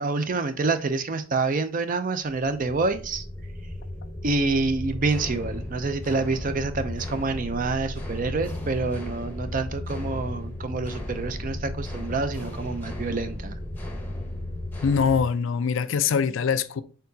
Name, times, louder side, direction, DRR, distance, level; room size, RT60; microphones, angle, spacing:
voice 1, 0.0-3.2 4.2-13.6, right 3 dB, 40° right, 0.5 m, -27 dB
sound 1, 2.8-15.3, left 1 dB, 10° left, 0.7 m, -35 dB
voice 2, 14.8-16.8, left 6 dB, 65° left, 0.4 m, -23 dB
4.4 x 3.8 x 2.7 m
head